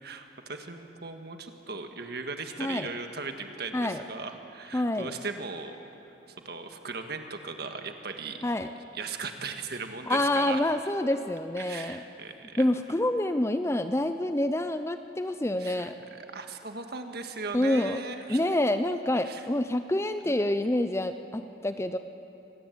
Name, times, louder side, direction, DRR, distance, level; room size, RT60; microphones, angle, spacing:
voice 1, 0.0-5.8 6.3-8.4 8.9-10.6 11.6-12.6 15.6-18.4 19.2-19.5 20.2-20.3, right 4 dB, 55° right, 6 dB, 1.7 m, -38 dB
voice 2, 4.7-5.1 8.4-8.7 10.1-12.0 12.6-16.0 17.5-18.0 18.3-22.0, left 1 dB, 15° left, 9 dB, 0.5 m, -27 dB
24.5 x 18.5 x 8.4 m, 2.9 s
head